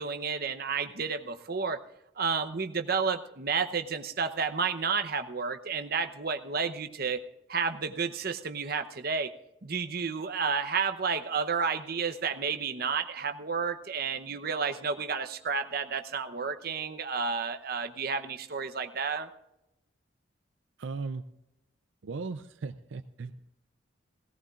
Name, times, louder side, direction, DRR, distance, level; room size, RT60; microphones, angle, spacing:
voice 1, 0.0-1.8 2.2-7.2 7.5-9.3 9.6-19.3, right 5 dB, 50° right, 8 dB, 0.8 m, -31 dB
voice 2, 20.8-21.2 22.0-23.5, right 4 dB, 80° right, 10 dB, 0.5 m, -37 dB
17.0 x 17.0 x 2.5 m, 0.90 s
head